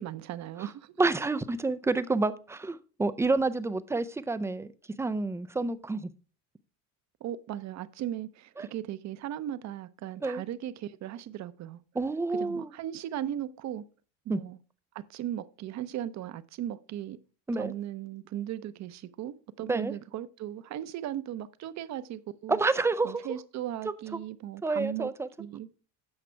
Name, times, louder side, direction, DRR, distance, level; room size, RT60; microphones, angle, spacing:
voice 1, 0.0-1.0 7.2-11.8 12.3-13.8 14.3-14.6 14.9-17.2 17.6-22.6 23.0-25.1 25.4-25.7, right 11 dB, 45° right, 0.7 m, -37 dB
voice 2, 1.0-4.7 5.0-6.1 8.6-8.7 10.2-10.4 12.0-12.7 14.3-14.4 17.5-17.7 19.7-19.9 22.5-23.2 24.6-25.3, right 3 dB, 5° right, 0.3 m, -28 dB
8.8 x 5.9 x 4.5 m
supercardioid pair, 120°, 39 cm